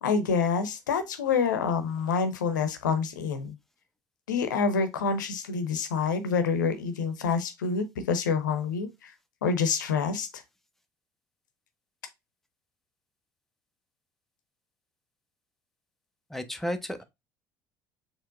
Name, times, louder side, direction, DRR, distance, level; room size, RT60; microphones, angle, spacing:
voice 1, 0.0-3.5 4.3-9.1 9.4-10.4, left 5 dB, 75° left, 0.7 m, -27 dB
voice 2, 16.3-17.0, equal, 5° left, 0.7 m, -32 dB
4.4 x 3.3 x 2.4 m
figure-of-eight pair, 60°, 10 cm